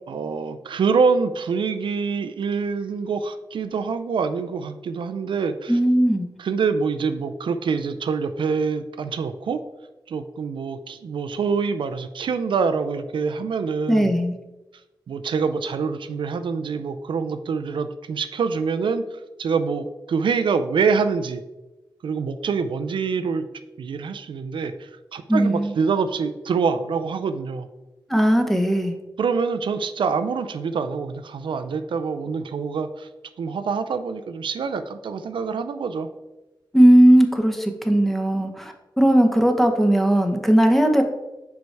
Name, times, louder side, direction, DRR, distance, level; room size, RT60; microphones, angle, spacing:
voice 1, 0.1-5.8 6.4-9.6 10.1-14.1 15.1-19.0 19.4-21.4 22.0-23.5 23.8-27.7 29.2-33.1 33.4-36.1, right 5 dB, 75° right, 10 dB, 0.4 m, -25 dB
voice 2, 5.7-6.3 13.9-14.3 25.3-25.7 28.1-28.9 36.7-41.0, right 1 dB, ahead, 5 dB, 0.9 m, -17 dB
5.2 x 4.6 x 4.6 m, 1.0 s
wide cardioid pair, 80°, 8 cm